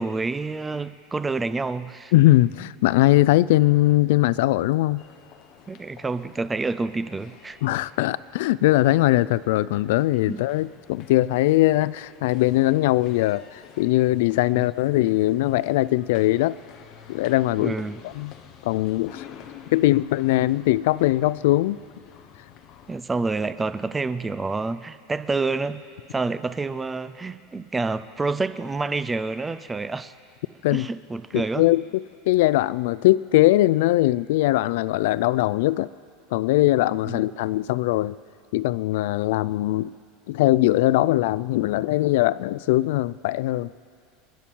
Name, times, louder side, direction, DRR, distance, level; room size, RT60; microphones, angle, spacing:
voice 1, 0.0-2.1 5.7-7.6 10.3-10.4 14.5-14.6 17.6-18.0 22.9-25.8 26.1-30.1 30.7-31.7 37.1-37.2, right 3 dB, 10° right, 14 dB, 0.4 m, -28 dB
voice 2, 2.1-5.0 7.6-16.6 17.1-17.7 18.0-18.3 18.6-19.2 19.7-21.8 30.6-30.9 31.3-35.9 36.3-38.2 38.5-39.9 40.3-43.7, left 17 dB, 70° left, 19 dB, 0.3 m, -21 dB
sound 1, 5.0-23.0, left 8 dB, 35° left, 1.0 m, -49 dB
29.5 x 10.0 x 4.5 m, 2.3 s
supercardioid pair, 170°, 0 cm